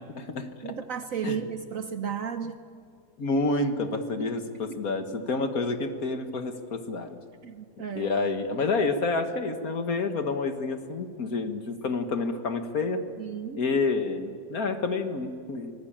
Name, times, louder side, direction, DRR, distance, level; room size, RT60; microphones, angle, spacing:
voice 1, 0.1-0.8 1.2-1.4 3.2-7.2 8.0-13.0 13.6-15.7, left 3 dB, 55° left, 7 dB, 1.8 m, -29 dB
voice 2, 0.6-2.6 4.2-4.3 4.7-4.8 7.4-8.1 13.2-13.6, right 7 dB, 55° right, 9 dB, 1.1 m, -34 dB
25.5 x 19.5 x 8.8 m, 2.2 s
omnidirectional pair, 2.0 m